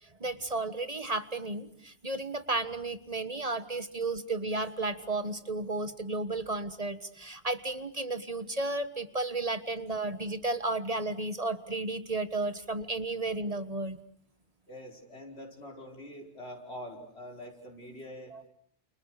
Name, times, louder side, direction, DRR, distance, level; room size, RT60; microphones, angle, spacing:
voice 1, 0.0-14.0 18.3-18.5, right 2 dB, 35° right, 11 dB, 1.4 m, -33 dB
voice 2, 14.7-18.3, equal, 80° left, 2 dB, 5.5 m, -45 dB
30.0 x 29.5 x 6.5 m, 0.64 s
omnidirectional pair, 1.1 m